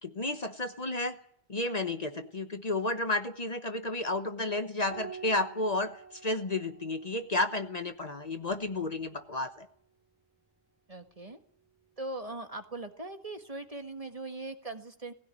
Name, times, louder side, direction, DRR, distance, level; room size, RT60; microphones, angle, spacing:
voice 1, 0.0-1.2 1.5-9.7, left 2 dB, 40° left, 9 dB, 1.1 m, -32 dB
Piano, 4.9-9.8 11.4-12.2, right 6 dB, 10° right, 3.5 m, -50 dB
voice 2, 10.9-11.4 12.0-15.1, right 2 dB, 35° right, 7 dB, 1.7 m, -40 dB
19.0 x 17.0 x 9.8 m, 0.66 s
omnidirectional pair, 1.1 m